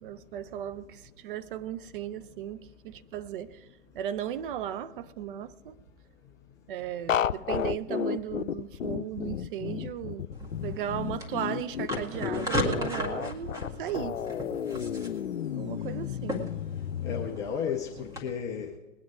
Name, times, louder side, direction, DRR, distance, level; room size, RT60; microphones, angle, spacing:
voice 1, 0.0-3.6 3.9-5.7 6.7-10.3 10.6-14.2 15.5-16.5, right 10 dB, 45° right, 0.7 m, -36 dB
sound 1, 7.1-17.3, left 9 dB, 85° left, 0.6 m, -32 dB
sound 2, 10.3-18.2, left 1 dB, 10° right, 1.9 m, -36 dB
voice 2, 17.0-18.8, left 7 dB, 10° left, 0.3 m, -33 dB
20.5 x 9.3 x 4.8 m
figure-of-eight pair, 115°, 38 cm